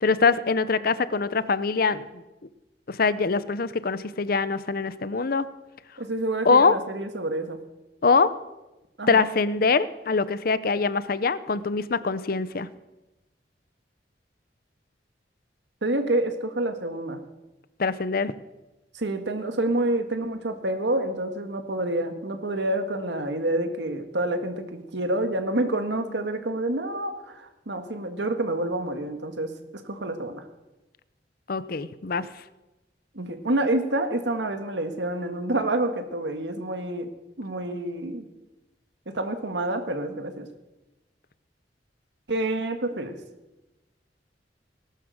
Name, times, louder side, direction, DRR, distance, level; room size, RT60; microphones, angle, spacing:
voice 1, 0.0-2.2 2.9-5.4 6.4-6.8 8.0-8.3 9.1-12.7 17.8-18.3 31.5-32.3, left 4 dB, 55° left, 15 dB, 0.7 m, -23 dB
voice 2, 6.0-7.6 9.0-9.2 15.8-17.2 18.9-30.4 33.2-37.1 37.4-38.3 39.1-40.5 42.3-43.2, right 1 dB, 90° right, 7 dB, 1.7 m, -28 dB
18.0 x 12.5 x 6.5 m, 1.0 s
head